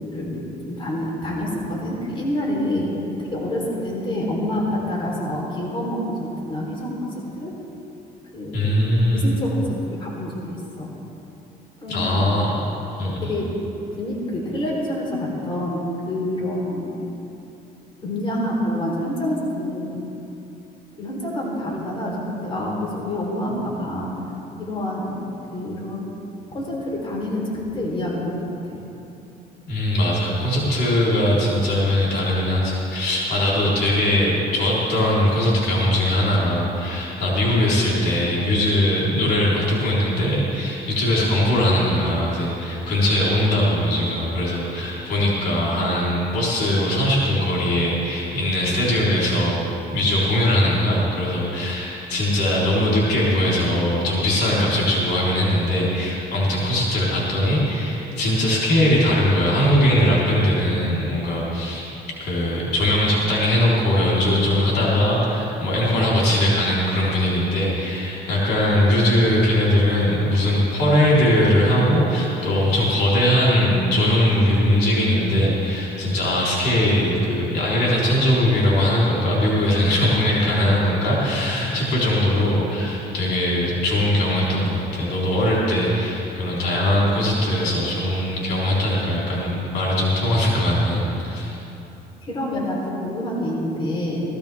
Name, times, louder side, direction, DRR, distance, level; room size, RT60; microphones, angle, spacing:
voice 1, 0.1-2.9 3.2-7.1 7.4-7.5 8.3-8.7 9.1-10.9 11.8-12.2 13.2-13.5 14.0-16.9 18.0-19.9 21.0-24.1 24.6-25.1 25.5-26.2 26.5-28.4 28.7-28.8 92.2-94.2, left 1 dB, 30° left, -4 dB, 3.9 m, -27 dB
voice 2, 8.5-9.3 11.9-12.6 13.0-13.3 29.7-49.6 49.9-61.9 62.2-91.6, left 1 dB, 75° left, -6 dB, 4.0 m, -20 dB
18.0 x 15.0 x 3.6 m, 3.0 s
cardioid pair, 110°, 17 cm